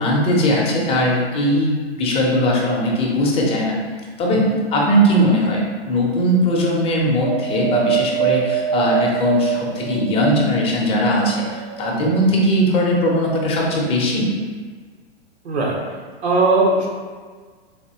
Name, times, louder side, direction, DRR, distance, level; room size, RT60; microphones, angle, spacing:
voice 1, 0.0-3.8 4.2-14.3, equal, 20° left, -2 dB, 0.7 m, -19 dB
Wind, 7.2-10.7 11.3-12.3 13.1-13.2, right 9 dB, 35° right, 0.4 m, -24 dB
voice 2, 15.4-15.7 16.2-16.9, right 2 dB, 85° right, -2 dB, 1.1 m, -18 dB
4.1 x 2.8 x 2.8 m, 1.5 s
hypercardioid pair, 125°, 32 cm